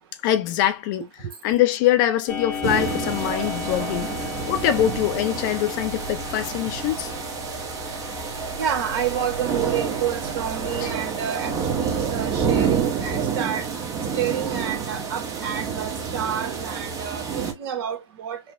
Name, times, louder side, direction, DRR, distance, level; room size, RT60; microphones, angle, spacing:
voice 1, 0.2-1.1 1.4-4.1 4.5-7.1 10.8-10.9, left 12 dB, 40° left, 0.6 m, -23 dB
Clock, 2.3-11.2, left 4 dB, 5° left, 1.0 m, -36 dB
sound 1, 2.6-17.5, right 6 dB, 20° right, 1.0 m, -28 dB
voice 2, 8.6-13.7 14.1-18.4, right 8 dB, 45° right, 1.0 m, -29 dB
5.5 x 2.1 x 2.6 m
hypercardioid pair, 120°, 16 cm